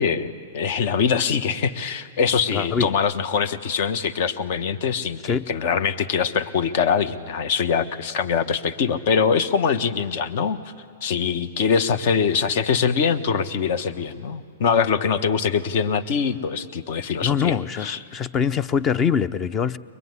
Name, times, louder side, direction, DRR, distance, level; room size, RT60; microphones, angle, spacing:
voice 1, 0.0-10.6 11.0-18.0, left 6 dB, 55° left, 12 dB, 1.2 m, -23 dB
voice 2, 2.5-2.9 5.2-5.5 17.2-19.8, left 7 dB, 25° left, 17 dB, 0.7 m, -23 dB
23.0 x 22.0 x 9.7 m, 2.4 s
hypercardioid pair, 120°, 0 cm